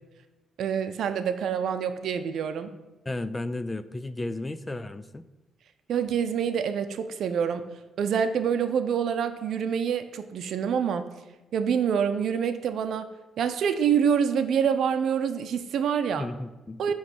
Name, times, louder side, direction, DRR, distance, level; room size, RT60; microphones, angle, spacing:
voice 1, 0.6-2.7 5.9-7.6 8.0-11.0 11.5-13.1 13.4-16.3 16.8-16.9, right 7 dB, 70° right, 9 dB, 0.6 m, -26 dB
voice 2, 3.1-5.3 16.1-16.8, left 2 dB, 20° left, 14 dB, 0.4 m, -33 dB
8.8 x 3.2 x 6.0 m, 1.1 s
cardioid pair, 90°, 0 cm